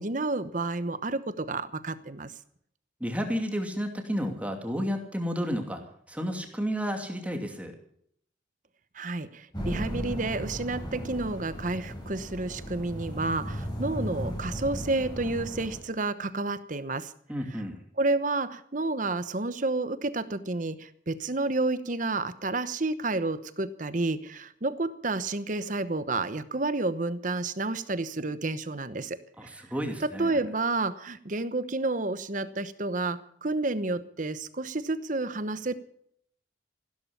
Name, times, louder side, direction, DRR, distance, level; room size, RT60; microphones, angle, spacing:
voice 1, 0.0-2.3 8.9-17.1 18.0-29.7 30.0-35.7, right 2 dB, 45° right, 13 dB, 1.0 m, -30 dB
voice 2, 3.0-5.8 6.1-7.8 17.3-17.8 29.4-30.4, equal, 10° right, 4 dB, 2.6 m, -31 dB
sound 1, 9.5-15.8, equal, 25° left, 6.0 m, -36 dB
16.0 x 12.5 x 7.1 m, 0.68 s
head